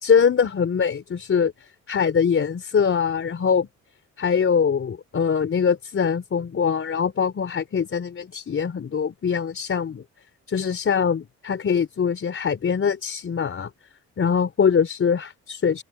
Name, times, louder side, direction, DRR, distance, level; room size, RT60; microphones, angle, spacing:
voice 1, 0.0-1.5 1.9-3.7 4.2-10.0 10.5-13.7 14.2-15.8, left 6 dB, 45° left, 4.1 m, -23 dB
open air
cardioid pair, 90°, 30 cm